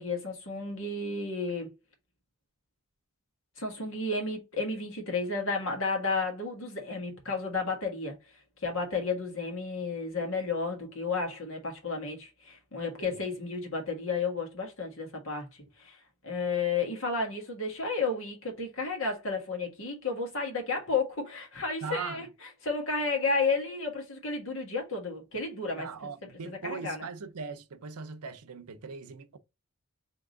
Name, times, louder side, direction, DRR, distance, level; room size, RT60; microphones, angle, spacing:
voice 1, 0.0-1.7 3.6-8.2 8.6-16.0 16.2-22.3 22.6-25.9 26.4-27.1, left 4 dB, 65° left, 1.5 m, -32 dB
voice 2, 21.8-22.3 25.8-29.4, right 5 dB, 90° right, 0.6 m, -40 dB
3.5 x 2.9 x 3.9 m
head